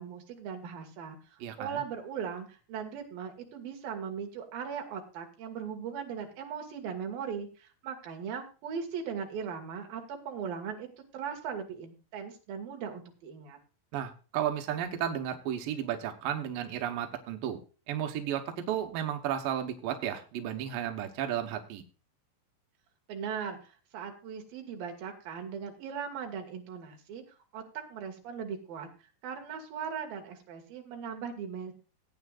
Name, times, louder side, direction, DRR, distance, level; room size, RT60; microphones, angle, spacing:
voice 1, 0.0-10.9 11.1-13.6 23.1-27.2 27.5-27.6 27.9-28.9 29.2-31.7, right 7 dB, 55° right, 3 dB, 3.1 m, -39 dB
voice 2, 1.4-1.8 13.9-17.6 17.9-21.8, right 10 dB, 90° right, 5 dB, 1.9 m, -33 dB
18.0 x 9.2 x 2.4 m, 0.34 s
omnidirectional pair, 5.9 m